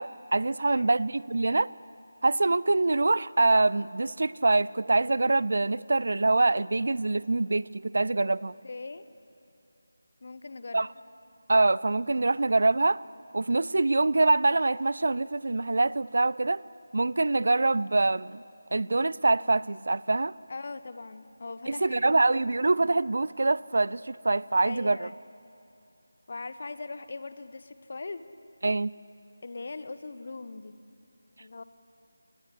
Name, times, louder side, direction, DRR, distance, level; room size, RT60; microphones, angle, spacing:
voice 1, 0.0-1.7 2.2-8.6 10.7-10.9 11.5-13.0 13.3-16.6 16.9-18.4 18.7-20.3 21.7-25.1 28.6-28.9, right 2 dB, 55° right, 0.4 m, -25 dB
voice 2, 8.6-9.0 10.2-10.9 20.5-22.0 24.6-25.1 26.3-28.2 29.4-30.8 31.4-31.6, left 3 dB, 45° left, 1.1 m, -40 dB
25.5 x 19.5 x 8.4 m
figure-of-eight pair, 160°, 0 cm